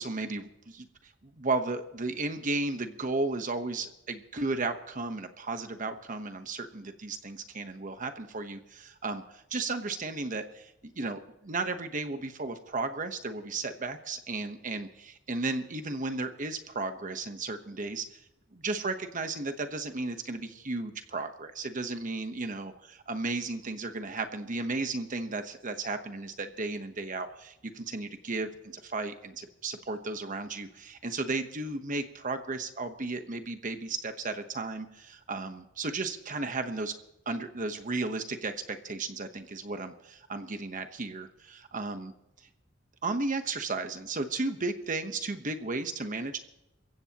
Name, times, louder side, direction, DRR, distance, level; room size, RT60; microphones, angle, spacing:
voice 1, 0.0-18.2 18.5-36.9 37.3-42.1 43.0-46.4, right 3 dB, 40° right, 7 dB, 1.1 m, -34 dB
28.0 x 15.5 x 3.0 m, 0.86 s
head